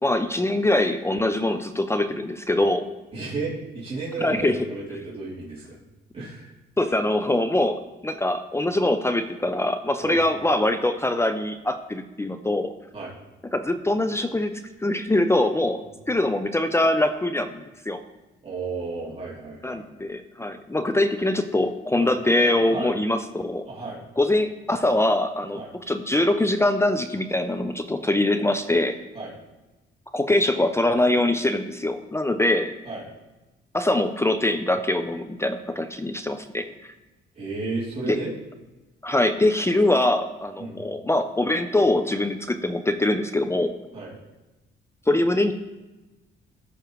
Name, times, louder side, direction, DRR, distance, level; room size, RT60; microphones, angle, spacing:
voice 1, 0.0-2.8 4.2-4.6 6.8-12.7 13.5-14.5 14.8-15.8 16.1-18.0 19.6-23.7 24.2-25.6 25.9-29.0 30.1-32.7 33.7-36.9 38.1-38.2 39.0-43.7 45.1-45.5, left 1 dB, 15° left, 9 dB, 0.5 m, -23 dB
voice 2, 3.1-5.8 6.1-6.5 10.0-10.2 12.9-13.1 18.4-19.9 22.0-22.1 22.7-22.9 23.6-24.0 25.5-25.7 29.1-29.3 32.8-33.1 37.3-38.3 40.6-40.8 43.9-44.2, right 3 dB, 30° right, -7 dB, 2.9 m, -33 dB
14.0 x 6.3 x 3.1 m, 1.1 s
cardioid pair, 90°, 20 cm